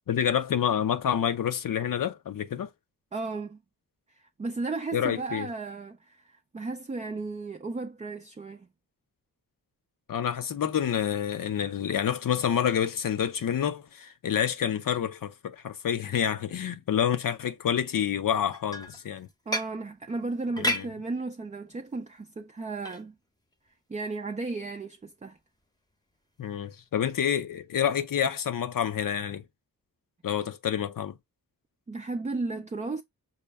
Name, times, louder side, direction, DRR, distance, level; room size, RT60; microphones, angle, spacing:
voice 1, 0.1-2.7 4.9-5.5 10.1-19.3 20.6-20.9 26.4-29.4 30.2-31.1, left 9 dB, 65° left, 0.6 m, -28 dB
voice 2, 3.1-3.6 4.1-8.7 19.5-23.1 23.9-25.4 31.9-33.0, right 3 dB, 20° right, 0.4 m, -34 dB
sound 1, 18.3-19.8 20.3-20.9 21.7-21.9 22.7-23.0 23.5-23.7 24.2-24.3 25.6-25.7 26.4-26.6, left 1 dB, 10° left, 0.8 m, -32 dB
5.6 x 2.2 x 3.4 m
cardioid pair, 65°, 36 cm